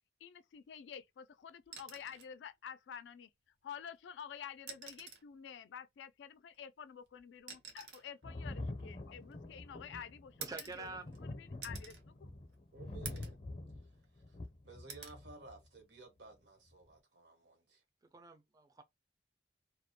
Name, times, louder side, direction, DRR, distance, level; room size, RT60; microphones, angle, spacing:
voice 1, 0.2-3.3 3.6-12.3, left 8 dB, 85° left, 0.3 m, -50 dB
sound 1, 1.6-2.4 3.8-3.9 4.6-5.3 6.5-9.6 10.4-11.2 11.6-12.0 12.5-12.6 13.1-13.4 13.9-14.5 14.9-15.2 16.7-16.9, right 6 dB, 70° right, 0.7 m, -50 dB
Thunder, 8.2-15.6 16.7-16.8, left 2 dB, 35° left, 0.5 m, -46 dB
voice 2, 10.4-11.1 18.1-18.8, right 3 dB, 20° right, 0.3 m, -47 dB
voice 3, 12.7-13.4 14.3-14.4 14.6-17.8, right 3 dB, 85° right, 1.1 m, -55 dB
2.3 x 2.1 x 2.7 m
head